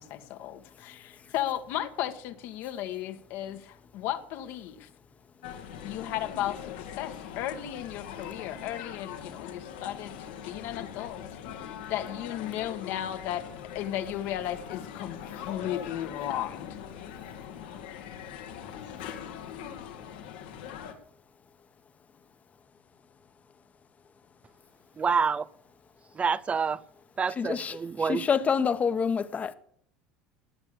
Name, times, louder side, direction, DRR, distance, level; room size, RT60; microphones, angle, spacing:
voice 1, 0.0-4.9 5.8-11.2 11.9-13.4 13.7-16.8, left 12 dB, 65° left, 1.6 m, -35 dB
sound 1, 5.4-20.9, left 9 dB, 85° left, 2.1 m, -41 dB
voice 2, 25.0-25.5 26.2-26.8 27.2-28.2, right 5 dB, 30° right, 0.6 m, -27 dB
voice 3, 27.3-29.5, left 6 dB, 30° left, 1.2 m, -27 dB
18.0 x 8.3 x 6.8 m
hypercardioid pair, 85°, 5 cm